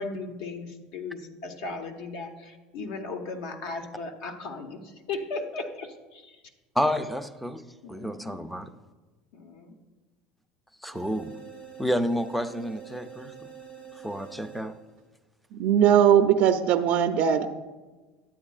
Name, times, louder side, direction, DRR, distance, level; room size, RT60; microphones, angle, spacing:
voice 1, 0.0-6.4 7.8-8.4 9.3-9.7, left 3 dB, 75° left, 4 dB, 0.9 m, -37 dB
voice 2, 6.8-8.7 10.8-11.4 11.8-13.3 14.0-14.8, equal, ahead, 10 dB, 0.4 m, -30 dB
sound 1, 10.9-15.1, right 8 dB, 50° left, 1.7 m, -46 dB
voice 3, 15.5-17.5, right 9 dB, 60° right, 7 dB, 0.5 m, -20 dB
11.5 x 8.2 x 2.4 m, 1.2 s
supercardioid pair, 125°, 3 cm